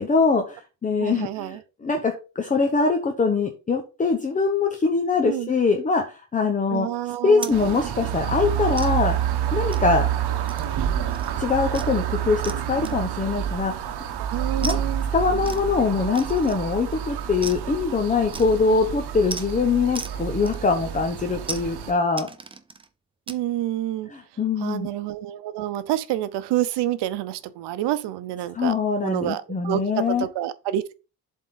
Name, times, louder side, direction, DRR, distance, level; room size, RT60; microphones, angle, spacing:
voice 1, 0.0-6.9 7.2-9.2 9.5-10.1 11.4-12.4 12.7-13.9 14.6-14.8 15.1-22.3 24.1-24.9 28.5-30.3, left 4 dB, 20° left, 0.8 m, -23 dB
voice 2, 1.0-1.6 5.2-5.5 6.7-7.5 14.2-15.1 23.3-24.1 24.6-28.7 29.0-30.9, right 13 dB, 90° right, 0.8 m, -28 dB
sound 1, 7.4-7.6 8.0-8.1 8.8-8.9 9.7-10.0 10.5-10.8 11.1-11.3 11.7-12.0 12.4-12.6 12.8-13.3 14.6-14.8 15.4-15.7 16.1-16.7 17.4-17.7 18.3-18.7 19.3-19.5 19.9-20.2 20.5-20.9 21.4-21.7 22.2-22.9 23.3-23.4, right 4 dB, 15° right, 0.5 m, -36 dB
sound 2, 7.5-21.9, right 10 dB, 75° right, 1.3 m, -28 dB
7.5 x 3.7 x 5.7 m
cardioid pair, 150°, 40 cm